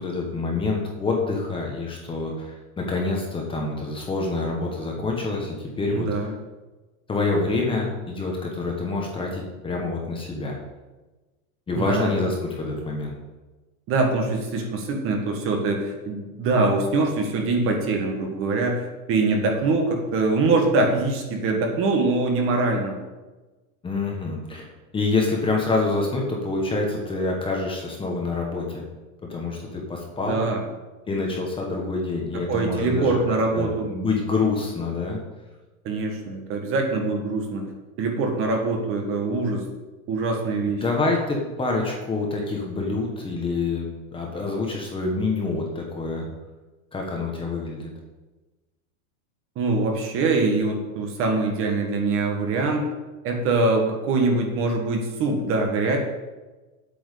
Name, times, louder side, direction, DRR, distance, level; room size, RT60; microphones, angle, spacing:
voice 1, 0.0-6.1 7.1-10.5 11.7-13.2 23.8-24.7 24.9-28.9 29.2-30.4 31.1-35.2 40.8-46.3 46.9-47.9, left 3 dB, 10° left, -1 dB, 1.4 m, -27 dB
voice 2, 5.9-6.3 11.7-12.1 13.9-23.0 30.3-30.6 32.3-33.9 35.8-37.7 38.0-39.6 40.1-40.8 49.5-52.8 53.2-56.0, right 3 dB, 30° right, 2 dB, 1.7 m, -23 dB
8.6 x 6.1 x 8.3 m, 1.2 s
supercardioid pair, 160°, 42 cm